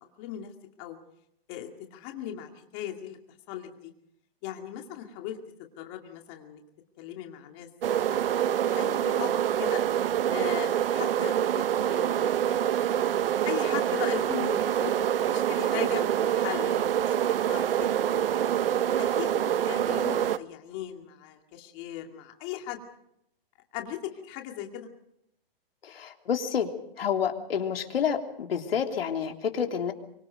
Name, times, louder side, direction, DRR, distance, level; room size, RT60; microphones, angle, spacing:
voice 1, 0.2-0.5 0.8-1.0 1.5-3.2 3.5-3.9 4.4-6.6 7.0-7.7 8.1-9.3 9.6-9.8 10.3-12.4 13.5-18.3 18.8-19.3 19.6-22.8 23.7-24.9, left 11 dB, 25° left, 3 dB, 2.3 m, -38 dB
sound 1, 7.8-20.4, right 10 dB, 75° right, 0.8 m, -26 dB
voice 2, 25.8-26.7 27.0-29.9, left 7 dB, 80° left, 3 dB, 3.3 m, -29 dB
24.0 x 24.0 x 5.2 m, 0.75 s
hypercardioid pair, 170°, 29 cm